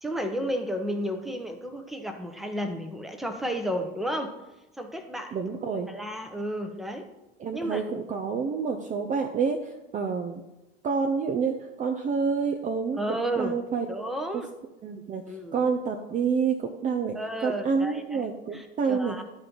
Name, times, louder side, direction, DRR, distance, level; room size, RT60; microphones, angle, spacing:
voice 1, 0.0-4.3 4.8-5.4 5.6-7.1 7.5-7.8 13.0-13.6 13.9-14.5 15.3-15.6 17.1-19.2, equal, ahead, 5 dB, 0.9 m, -32 dB
voice 2, 5.3-5.9 7.4-10.4 10.8-13.9 14.8-15.2 15.5-19.2, right 5 dB, 25° right, 5 dB, 0.6 m, -28 dB
12.0 x 4.3 x 3.9 m, 1.0 s
figure-of-eight pair, 70°, 30 cm